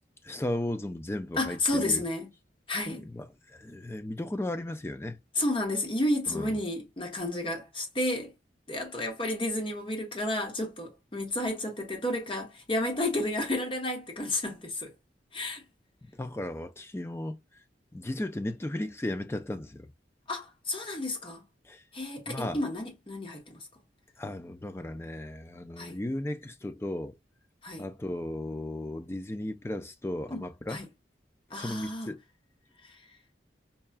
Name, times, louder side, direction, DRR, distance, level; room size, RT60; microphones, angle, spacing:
voice 1, 0.2-2.0 3.1-5.2 6.3-6.5 16.1-17.4 17.9-19.9 21.7-21.8 22.3-22.6 24.2-27.1 27.8-30.8 31.6-32.2, left 1 dB, 15° left, 0.3 m, -35 dB
voice 2, 1.4-2.3 2.7-3.1 5.4-8.3 8.7-14.9 15.3-15.6 20.3-21.4 21.9-23.6 25.8-26.0 27.6-27.9 30.3-30.4 30.7-30.9 31.5-32.1 32.8-33.0, left 1 dB, 30° left, 1.1 m, -31 dB
5.5 x 2.3 x 2.3 m
head